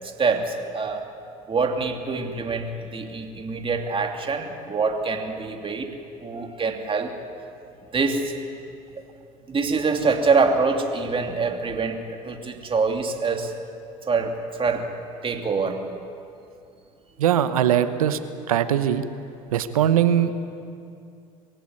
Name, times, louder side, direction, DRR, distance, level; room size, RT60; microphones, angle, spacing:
voice 1, 0.0-1.1 1.5-5.9 6.2-7.2 7.9-8.3 9.5-13.5 14.1-14.9 15.2-15.8, right 4 dB, 30° right, 4 dB, 2.7 m, -25 dB
voice 2, 17.2-18.2 18.5-19.0 19.5-20.5, right 10 dB, 90° right, 12 dB, 1.0 m, -21 dB
22.5 x 16.0 x 9.7 m, 2.5 s
hypercardioid pair, 70°, 18 cm